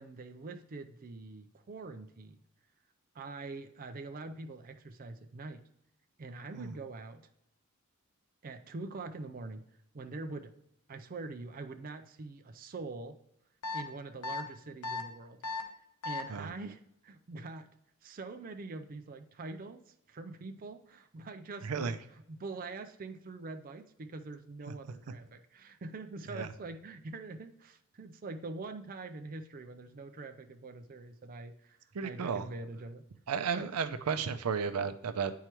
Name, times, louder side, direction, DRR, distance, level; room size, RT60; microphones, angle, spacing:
voice 1, 0.0-2.4 3.1-5.6 6.2-7.3 8.4-9.7 9.9-10.5 10.9-13.2 13.7-15.4 16.0-17.7 18.0-22.0 22.3-33.0 33.5-33.7, right 3 dB, 40° right, 7 dB, 0.4 m, -44 dB
sound 1, 13.6-13.8 14.2-14.4 14.8-15.0 15.4-15.6 16.0-16.2, left 3 dB, 85° left, 0.8 m, -35 dB
voice 2, 21.6-22.0 26.3-26.5 31.9-32.5 33.3-35.4, right 6 dB, 90° right, 10 dB, 0.5 m, -33 dB
9.0 x 4.6 x 3.0 m, 0.78 s
head